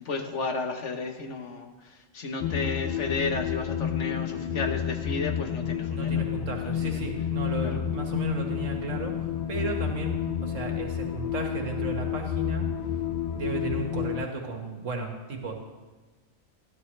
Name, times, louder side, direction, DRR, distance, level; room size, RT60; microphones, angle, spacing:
voice 1, 0.0-6.3 6.6-6.7 7.6-7.8, left 3 dB, 60° left, 5 dB, 1.4 m, -33 dB
sound 1, 2.4-14.3, left 9 dB, 85° left, 0.3 m, -30 dB
voice 2, 5.9-12.7 13.3-15.5, right 3 dB, 70° right, 2 dB, 2.1 m, -34 dB
19.0 x 12.0 x 3.3 m, 1.3 s
omnidirectional pair, 1.4 m